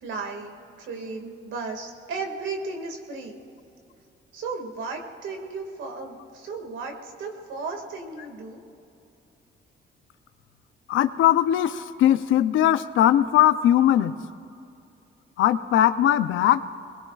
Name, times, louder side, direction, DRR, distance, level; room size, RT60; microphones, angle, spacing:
voice 1, 0.0-3.4 4.3-8.6, right 4 dB, 75° right, 3 dB, 2.2 m, -35 dB
voice 2, 10.9-14.2 15.4-16.6, left 12 dB, 80° left, 12 dB, 0.6 m, -20 dB
24.5 x 20.5 x 2.4 m, 2.6 s
cardioid pair, 90°, 20 cm